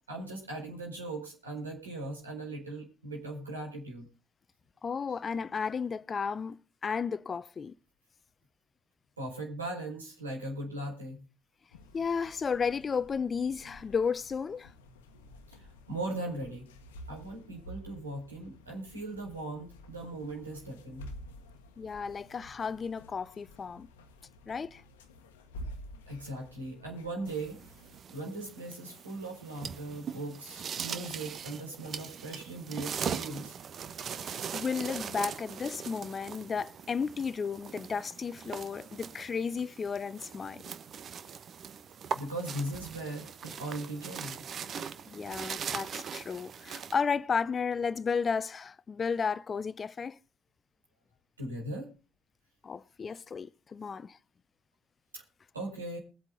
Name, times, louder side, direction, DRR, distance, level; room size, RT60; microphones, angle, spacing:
voice 1, 0.1-4.1 9.2-11.2 15.6-16.7 17.1-21.1 26.1-27.6 28.1-33.5 42.1-44.4 51.4-51.9 55.1-55.2 55.5-56.0, right 2 dB, 85° right, 4.7 m, -39 dB
voice 2, 4.8-7.7 11.9-14.7 21.8-23.9 24.5-24.8 34.2-40.6 45.1-50.2 52.6-54.2, left 6 dB, 35° left, 0.7 m, -33 dB
sound 1, 11.7-28.0, equal, 75° left, 1.3 m, -50 dB
sound 2, 27.3-46.9, right 7 dB, 45° right, 1.0 m, -41 dB
22.0 x 8.2 x 4.0 m
figure-of-eight pair, 50°, 0 cm